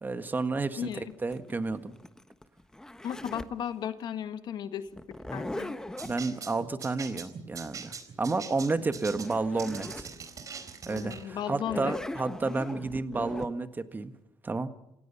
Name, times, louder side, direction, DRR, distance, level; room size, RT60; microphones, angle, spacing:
voice 1, 0.0-1.9 6.0-10.1 10.9-14.1 14.4-14.7, right 3 dB, 25° right, 10 dB, 1.7 m, -31 dB
Zipper (clothing), 0.9-3.6 5.0-6.2 8.8-8.9 9.1-10.1 10.6-10.7 11.5-13.5, left 1 dB, 5° left, 1.3 m, -39 dB
voice 2, 3.0-4.9 5.3-5.7 10.8-11.9, left 9 dB, 65° left, 10 dB, 1.7 m, -35 dB
sound 1, 6.0-11.3, right 6 dB, 45° right, 3.9 m, -42 dB
27.0 x 17.5 x 5.8 m, 0.89 s
cardioid pair, 100°, 8 cm